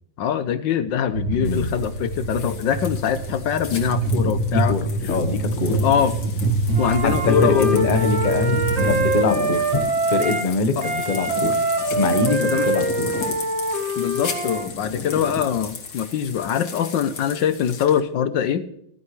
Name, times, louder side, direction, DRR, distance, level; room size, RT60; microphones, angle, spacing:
voice 1, 0.2-4.7 5.7-6.2 6.8-7.9 10.7-10.8 12.4-12.7 14.0-18.6, left 8 dB, 70° left, 12 dB, 1.3 m, -23 dB
sound 1, 1.1-9.1, right 3 dB, 60° right, 1.8 m, -25 dB
sound 2, 1.4-18.0, left 5 dB, 90° left, 2.8 m, -34 dB
voice 2, 1.4-1.7 4.5-5.8 7.0-9.8 10.1-11.5 11.9-13.1, left 3 dB, 35° left, 8 dB, 0.8 m, -23 dB
Wind instrument woodwind instrument, 6.7-10.5 10.8-14.7, right 2 dB, 35° right, 1.9 m, -24 dB
15.0 x 15.0 x 3.2 m, 0.74 s
omnidirectional pair, 2.2 m